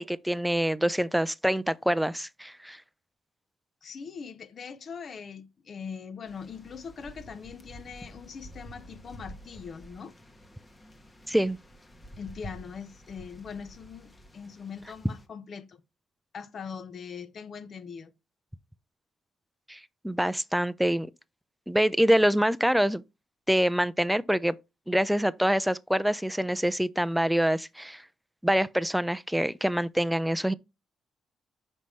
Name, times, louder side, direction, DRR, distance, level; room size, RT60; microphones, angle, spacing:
voice 1, 0.0-2.8 11.3-11.6 19.7-19.8 20.0-21.1 21.7-23.0 23.5-24.5 24.9-28.0 28.4-30.5, equal, 5° right, 0.5 m, -25 dB
voice 2, 3.8-10.1 12.2-15.8 16.3-18.1, left 6 dB, 50° left, 0.9 m, -41 dB
sound 1, 6.3-15.3, equal, 20° left, 1.2 m, -49 dB
6.0 x 5.4 x 3.2 m
cardioid pair, 90°, 0 cm